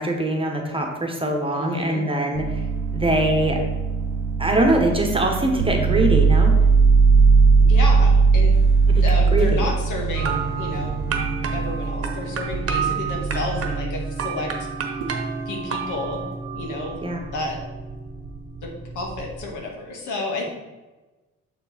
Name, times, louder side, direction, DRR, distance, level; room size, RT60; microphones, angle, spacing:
voice 1, 0.0-2.6 2.9-3.6 4.4-6.5 8.9-9.0 9.3-9.7 17.0-17.2, right 1 dB, 20° right, 2 dB, 1.2 m, -22 dB
voice 2, 1.5-2.0 7.6-8.6 9.0-11.0 11.5-14.5 15.5-16.2 16.5-17.0 17.3-17.6 18.6-20.5, left 2 dB, 80° left, 0 dB, 1.6 m, -31 dB
sound 1, 2.4-14.1 15.0-15.4, right 4 dB, 85° right, 0.7 m, -19 dB
sound 2, 10.1-19.5, right 5 dB, 50° right, 1.0 m, -30 dB
6.8 x 4.5 x 4.1 m, 1.1 s
cardioid pair, 90°, 30 cm